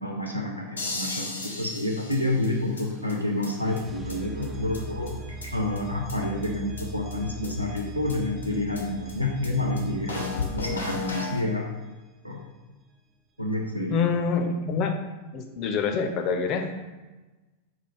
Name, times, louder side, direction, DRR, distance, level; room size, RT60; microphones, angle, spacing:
voice 1, 0.0-5.1 5.5-11.7 12.2-12.4 13.4-13.9, left 2 dB, 90° right, 0 dB, 0.6 m, -29 dB
sound 1, 0.8-2.8 3.1-3.2 3.4-3.5 3.8-3.9 4.1-4.2 4.4-4.5 4.7-4.8 5.1-5.8 6.1-6.2 6.4-6.5 6.8-6.9 7.1-7.2 7.4-7.5 7.8-7.9 8.1-8.2 8.4-8.5 8.7-8.8 9.1-9.2 9.4-9.5 9.8-9.9 10.1-11.4, left 3 dB, 80° left, 0.8 m, -34 dB
sound 2, 1.5-12.3, right 3 dB, 20° right, 0.4 m, -42 dB
voice 2, 13.9-15.0 15.3-16.7, left 5 dB, 40° left, 4 dB, 0.5 m, -26 dB
4.7 x 2.4 x 4.5 m, 1.2 s
figure-of-eight pair, 90°, 0 cm